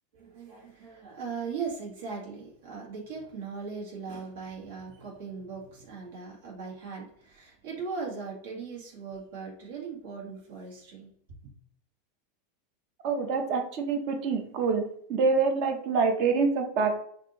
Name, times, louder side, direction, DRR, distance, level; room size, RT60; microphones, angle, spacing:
voice 1, 0.1-11.1, right 5 dB, 75° right, -2 dB, 1.7 m, -39 dB
voice 2, 13.0-14.8 15.1-17.0, right 4 dB, 45° right, 5 dB, 0.8 m, -26 dB
5.9 x 2.6 x 3.0 m, 0.66 s
supercardioid pair, 160°, 0 cm